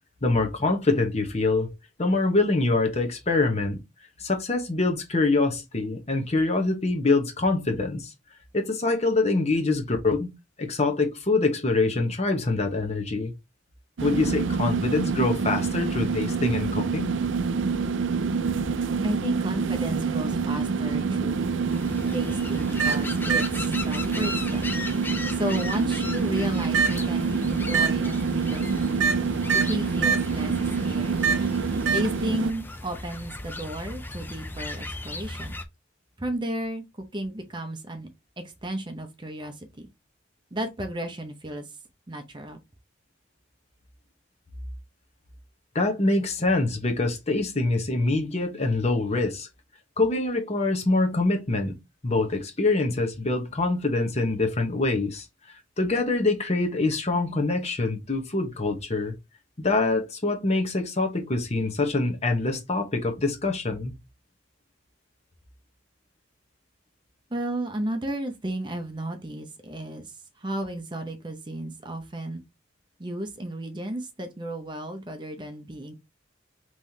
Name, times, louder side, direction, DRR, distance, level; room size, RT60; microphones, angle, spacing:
voice 1, 0.2-1.7 2.0-3.8 4.2-8.1 8.5-10.3 10.6-13.3 14.0-17.2 45.7-49.5 50.0-51.8 52.0-55.3 55.8-59.1 59.6-63.9, left 3 dB, 35° left, 1.0 m, -25 dB
sound 1, 14.0-32.5, right 5 dB, 70° right, 0.4 m, -26 dB
voice 2, 19.0-21.4 22.1-24.6 25.1-29.0 29.5-30.5 30.8-31.2 31.9-35.5 36.2-36.8 37.1-38.1 38.4-39.9 40.5-41.7 42.1-42.6 67.3-72.4 73.0-75.9, right 1 dB, 25° right, 0.7 m, -33 dB
sound 2, 21.7-35.6, left 2 dB, 10° left, 0.4 m, -37 dB
5.4 x 3.1 x 2.7 m
head